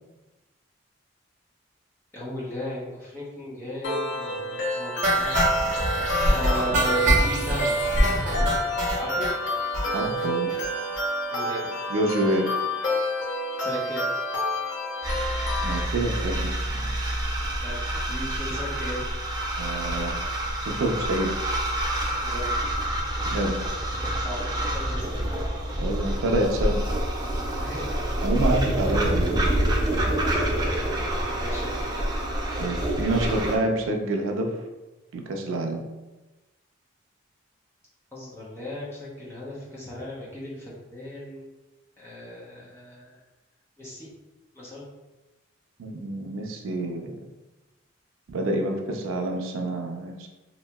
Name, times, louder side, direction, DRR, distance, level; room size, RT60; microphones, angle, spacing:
voice 1, 2.1-5.4 6.3-7.8 9.0-9.3 11.3-11.6 13.6-14.1 17.6-19.1 22.2-22.5 24.2-25.2 27.6-28.1 31.3-32.0 38.1-41.5 42.0-43.2 43.8-44.1 44.5-44.9, left 1 dB, 15° left, -8 dB, 0.7 m, -36 dB
sound 1, 3.8-15.8, left 1 dB, 65° left, 0.6 m, -29 dB
sound 2, 5.0-9.3 9.7-9.9 10.2-10.3 10.5-10.6 10.9-11.0, right 1 dB, 40° right, 0.8 m, -24 dB
voice 2, 9.9-10.5 11.5-11.6 11.9-12.5 15.6-16.4 16.7-16.9 19.6-20.2 20.6-21.3 23.3-23.6 25.8-26.8 28.2-29.6 32.6-34.5 35.1-35.8 45.8-47.1 48.3-50.3, right 1 dB, 85° right, 2 dB, 0.4 m, -27 dB
sound 3, 15.0-33.6, right 1 dB, 20° right, 0.3 m, -27 dB
2.9 x 2.7 x 2.2 m, 1.1 s
head